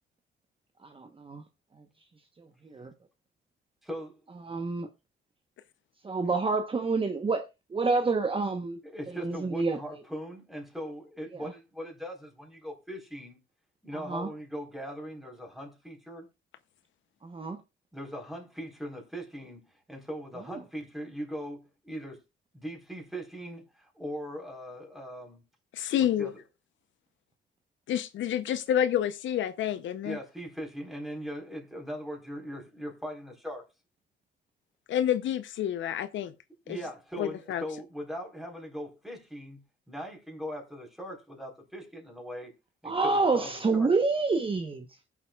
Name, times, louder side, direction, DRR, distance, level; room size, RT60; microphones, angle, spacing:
voice 1, 0.9-1.4 2.7-2.9 4.4-4.9 6.0-7.5 7.7-8.8 9.2-9.8 14.1-14.3 17.2-17.6 42.8-44.9, right 3 dB, 25° right, 1.0 m, -27 dB
voice 2, 3.8-4.2 8.8-13.4 13.8-16.3 17.9-22.2 22.5-25.4 26.2-26.4 30.0-33.6 36.7-42.5 42.8-43.9, equal, ahead, 4.0 m, -40 dB
voice 3, 25.7-26.3 27.9-30.2 34.9-36.3 36.7-36.8 37.2-37.6, left 10 dB, 70° left, 0.7 m, -28 dB
21.0 x 7.3 x 2.3 m
cardioid pair, 90°, 20 cm